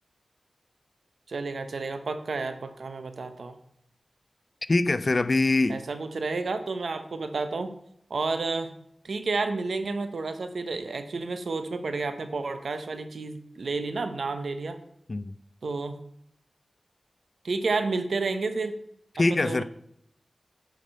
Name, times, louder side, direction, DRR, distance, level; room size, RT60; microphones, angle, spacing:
voice 1, 1.3-3.5 5.7-7.7 8.1-8.7 9.0-14.8 15.6-16.0 17.4-18.7 19.3-19.6, right 3 dB, 85° right, 9 dB, 0.9 m, -30 dB
voice 2, 4.7-5.8 15.1-15.3 19.2-19.6, left 2 dB, 50° left, 14 dB, 0.5 m, -23 dB
9.1 x 5.0 x 5.3 m, 0.72 s
wide cardioid pair, 65°, 0 cm